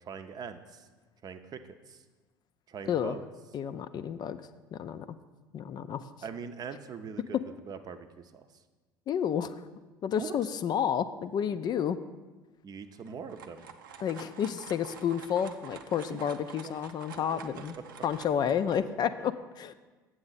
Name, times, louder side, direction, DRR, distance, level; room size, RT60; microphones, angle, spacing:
voice 1, 0.0-0.9 1.2-2.0 2.7-3.2 6.2-7.4 7.7-8.5 10.2-10.4 12.6-13.6 16.1-16.2 16.6-16.7 17.2-17.8, right 6 dB, 35° right, 9 dB, 0.6 m, -42 dB
voice 2, 2.9-3.2 3.5-5.1 5.5-6.0 9.1-9.6 10.0-12.0 14.0-17.8 18.0-19.7, left 8 dB, 40° left, 12 dB, 0.4 m, -31 dB
sound 1, 13.0-18.8, right 6 dB, 80° right, 0.5 m, -48 dB
7.8 x 7.4 x 4.1 m, 1.3 s
figure-of-eight pair, 65°, 11 cm